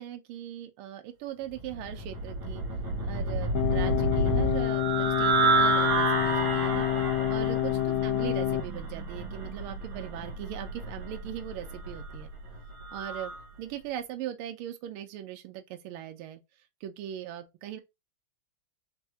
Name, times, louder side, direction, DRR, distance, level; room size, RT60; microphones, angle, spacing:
voice 1, 0.0-2.6 3.0-6.9 7.3-12.3 12.9-13.3 13.6-16.4 16.8-17.8, right 12 dB, 85° right, 1.5 m, -39 dB
sound 1, 1.6-13.4, right 3 dB, 65° right, 1.7 m, -30 dB
sound 2, 3.5-8.6, left 17 dB, 90° left, 1.5 m, -28 dB
4.4 x 2.1 x 2.7 m
omnidirectional pair, 2.4 m